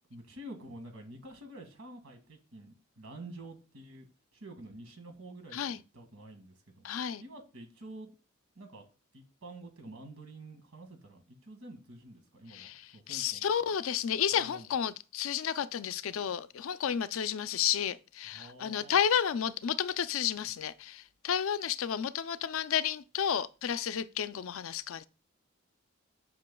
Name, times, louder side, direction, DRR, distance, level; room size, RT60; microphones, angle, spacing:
voice 1, 0.1-4.1 4.3-6.8 7.2-8.1 8.6-8.8 9.1-13.7 14.3-14.7 18.3-19.0 20.4-20.5, right 1 dB, 90° right, 1.9 m, -49 dB
voice 2, 6.8-7.2 12.5-25.1, left 8 dB, 75° left, 0.4 m, -32 dB
10.5 x 5.7 x 2.3 m
head